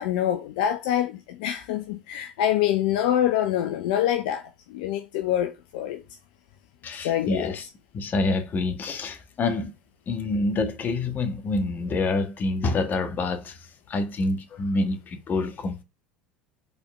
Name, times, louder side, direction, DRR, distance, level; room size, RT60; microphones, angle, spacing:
voice 1, 0.0-6.0 7.0-7.5, left 11 dB, 65° left, 0.7 m, -25 dB
voice 2, 6.8-7.7 7.9-9.7 10.1-13.6 13.9-15.8, left 3 dB, 40° left, 1.6 m, -27 dB
5.5 x 4.4 x 5.9 m
hypercardioid pair, 75°, 5 cm